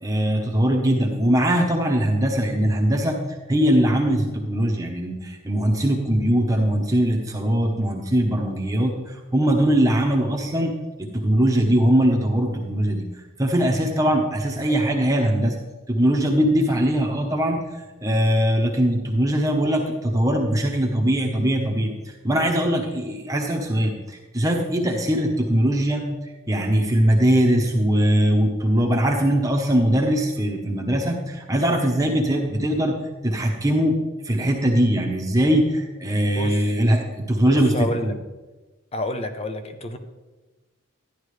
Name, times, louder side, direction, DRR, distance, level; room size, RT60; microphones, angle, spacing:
voice 1, 0.0-3.2 3.5-13.0 13.4-15.6 15.9-17.6 18.0-34.0 34.2-38.1, right 1 dB, 15° right, 0 dB, 1.0 m, -21 dB
voice 2, 36.4-36.7 37.5-38.2 38.9-40.0, left 1 dB, 30° left, 8 dB, 0.8 m, -29 dB
12.5 x 10.5 x 3.3 m, 1.2 s
head